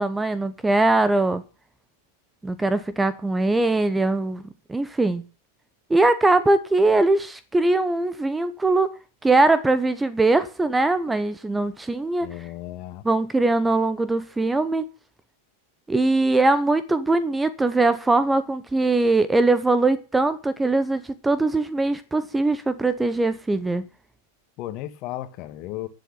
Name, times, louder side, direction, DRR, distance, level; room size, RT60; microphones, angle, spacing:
voice 1, 0.0-1.4 2.4-4.4 4.7-5.2 5.9-8.9 9.2-12.3 13.0-14.8 15.9-23.8, right 2 dB, 10° right, 0.9 m, -21 dB
voice 2, 12.2-13.0 24.6-25.9, left 14 dB, 40° left, 1.6 m, -34 dB
11.5 x 7.5 x 7.8 m
figure-of-eight pair, 90°, 0 cm